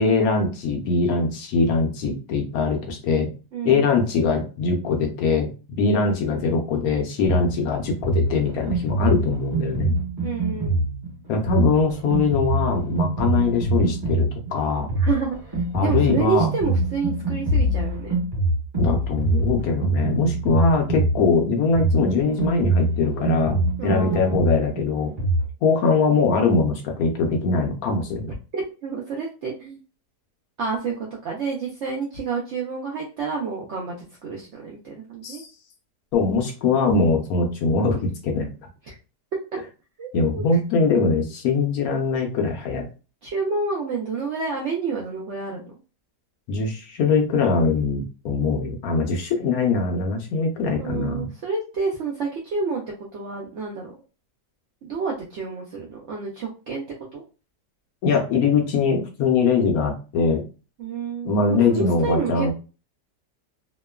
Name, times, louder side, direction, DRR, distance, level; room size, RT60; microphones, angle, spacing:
voice 1, 0.0-3.3 3.6-5.5 5.8-10.0 11.3-14.9 15.7-16.5 18.8-25.2 25.6-28.3 35.2-35.5 36.1-38.5 40.1-42.9 46.5-51.3 58.0-60.4 61.2-62.5, left 4 dB, 70° left, 3 dB, 0.9 m, -22 dB
voice 2, 3.5-3.9 10.2-10.8 15.0-15.4 15.8-18.1 23.8-24.4 28.5-29.8 30.6-30.9 31.2-34.0 34.2-35.4 38.9-39.0 40.0-40.5 43.2-45.6 50.8-52.8 53.1-54.0 54.8-56.8 57.1-57.2 60.8-62.5, right 4 dB, 75° right, -2 dB, 0.6 m, -29 dB
Drum kit, 7.3-25.5, right 1 dB, 35° right, 1.2 m, -24 dB
2.9 x 2.1 x 2.2 m, 0.34 s
omnidirectional pair, 1.8 m